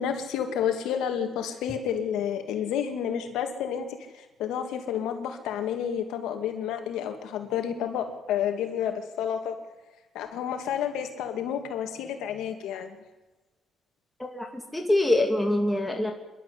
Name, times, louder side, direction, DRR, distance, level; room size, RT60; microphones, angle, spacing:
voice 1, 0.0-9.6 10.1-13.0, left 8 dB, 90° left, 6 dB, 2.4 m, -30 dB
voice 2, 14.7-16.1, left 1 dB, 5° left, 2 dB, 2.9 m, -24 dB
27.0 x 12.0 x 8.6 m, 1.2 s
cardioid pair, 90°, 0 cm